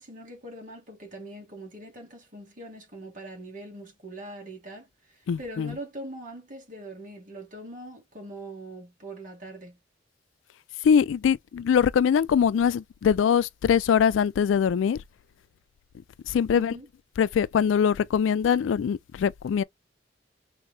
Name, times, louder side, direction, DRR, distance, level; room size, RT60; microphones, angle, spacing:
voice 1, 0.0-9.8 16.5-16.9, right 1 dB, 45° right, 1.5 m, -42 dB
voice 2, 5.3-5.7 10.8-15.0 16.3-16.7 17.2-19.6, left 7 dB, 85° left, 0.3 m, -22 dB
3.5 x 3.0 x 3.2 m
head